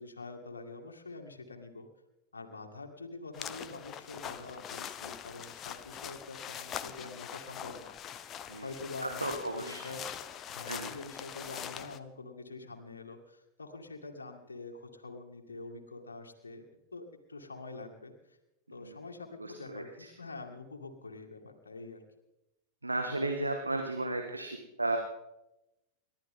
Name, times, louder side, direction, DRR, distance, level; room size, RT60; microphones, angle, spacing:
voice 1, 0.0-1.9 2.3-7.9 8.6-10.0 10.5-16.7 16.9-18.4 18.7-22.0, left 3 dB, 75° left, 2 dB, 2.2 m, -45 dB
sound 1, 3.3-12.0, left 9 dB, 30° left, 0.9 m, -43 dB
voice 2, 9.2-9.8 10.7-10.9 18.7-19.0 19.4-20.1 22.8-25.0, right 2 dB, 85° right, 4 dB, 1.6 m, -34 dB
29.5 x 13.0 x 3.8 m, 0.94 s
figure-of-eight pair, 90°, 0 cm